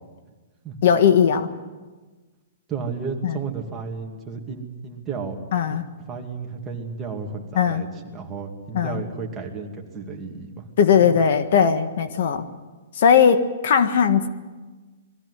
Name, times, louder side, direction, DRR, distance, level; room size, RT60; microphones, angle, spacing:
voice 1, 0.8-1.5 3.2-3.4 5.5-5.8 7.5-7.8 8.7-9.0 10.8-12.4 12.9-14.3, left 7 dB, 55° left, 10 dB, 1.4 m, -18 dB
voice 2, 2.7-5.4 5.7-5.8 6.1-7.9 8.1-10.7 11.0-11.2, right 5 dB, 15° right, 0 dB, 2.4 m, -33 dB
21.5 x 15.0 x 9.8 m, 1.3 s
hypercardioid pair, 160°, 0 cm